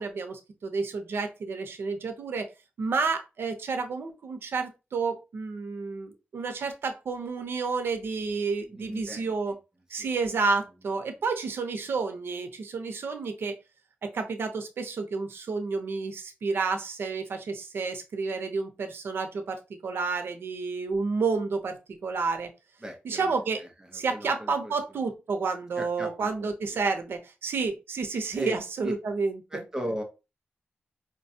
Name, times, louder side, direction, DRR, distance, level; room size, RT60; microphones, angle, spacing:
voice 1, 0.0-2.5 2.8-9.5 9.9-13.6 14.0-22.5 23.0-23.6 23.9-29.6, right 4 dB, 80° right, 6 dB, 0.7 m, -30 dB
voice 2, 8.8-9.3 10.0-10.1 22.8-24.7 25.8-26.5 28.3-28.6 29.5-30.0, equal, 15° right, 2 dB, 0.6 m, -37 dB
5.0 x 2.2 x 2.7 m, 0.28 s
wide cardioid pair, 120°, 4 cm